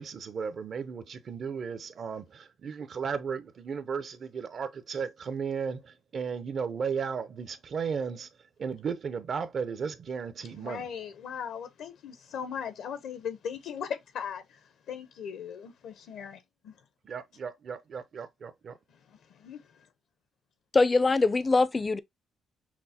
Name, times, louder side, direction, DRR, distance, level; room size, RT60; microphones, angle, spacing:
voice 1, 0.0-8.3 8.6-10.9 17.0-18.8, right 6 dB, 50° right, 0.6 m, -35 dB
voice 2, 10.6-14.6 14.9-16.7 19.1-19.6, left 7 dB, 80° left, 0.7 m, -38 dB
voice 3, 20.7-22.0, left 3 dB, 25° left, 0.4 m, -23 dB
5.9 x 2.1 x 2.7 m
cardioid pair, 90°, 0 cm